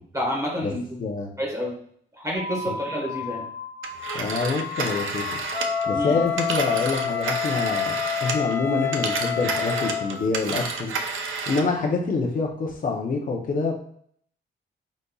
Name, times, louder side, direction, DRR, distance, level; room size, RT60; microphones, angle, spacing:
voice 1, 0.1-0.8 1.4-1.7 2.2-3.5 5.9-6.2, equal, 15° right, -2 dB, 1.4 m, -28 dB
voice 2, 1.0-1.3 2.7-2.8 4.1-5.4 5.9-10.9 11.5-13.7, left 4 dB, 45° left, 0 dB, 0.6 m, -26 dB
sound 1, 2.3-10.3, left 4 dB, 85° left, 0.9 m, -36 dB
Telephone, 3.8-8.6 8.9-11.8, right 5 dB, 80° right, 0.6 m, -31 dB
Wind instrument woodwind instrument, 5.5-10.2, left 8 dB, 10° left, 0.3 m, -28 dB
5.1 x 4.0 x 2.3 m, 0.64 s
wide cardioid pair, 160°, 20 cm